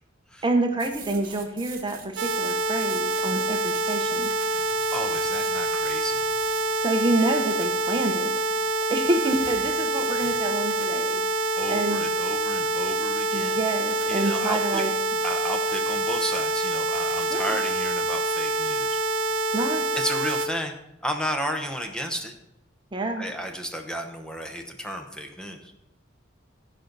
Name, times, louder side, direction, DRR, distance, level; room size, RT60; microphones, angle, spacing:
voice 1, 0.4-4.3 6.8-8.5 8.9-11.4 11.7-12.0 13.3-14.9 17.3-17.4 19.5-19.9 22.9-23.2, right 2 dB, 25° right, 4 dB, 0.8 m, -27 dB
sound 1, 0.8-6.9 9.0-10.4, right 6 dB, 45° right, 1.5 m, -44 dB
sound 2, 2.2-20.5, right 2 dB, 65° right, 0.8 m, -26 dB
voice 2, 4.9-6.2 11.6-13.6 14.1-14.8 15.2-19.0 19.9-20.7 21.0-22.3 23.2-25.7, equal, 5° left, 4 dB, 0.9 m, -33 dB
15.5 x 5.3 x 4.0 m, 0.86 s
head